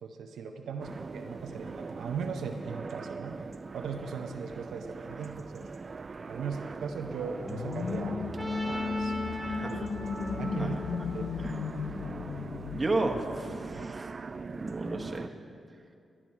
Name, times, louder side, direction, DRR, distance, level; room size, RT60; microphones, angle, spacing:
voice 1, 0.0-3.4 3.7-5.7 6.3-9.1 9.7-9.9 10.4-10.8 11.1-11.3 13.7-13.9, right 6 dB, 90° right, 4 dB, 0.6 m, -38 dB
sound 1, 0.8-15.3, right 4 dB, 45° right, 0.3 m, -42 dB
sound 2, 7.4-13.9, left 5 dB, 75° left, 0.4 m, -35 dB
Trumpet, 8.4-12.4, right 1 dB, 5° right, 2.5 m, -41 dB
voice 2, 9.4-9.8 10.5-10.8 11.4-11.6 12.7-14.1 14.5-15.3, right 2 dB, 30° right, 2 dB, 1.2 m, -33 dB
12.5 x 9.9 x 4.4 m, 2.4 s
cardioid pair, 65°, 0 cm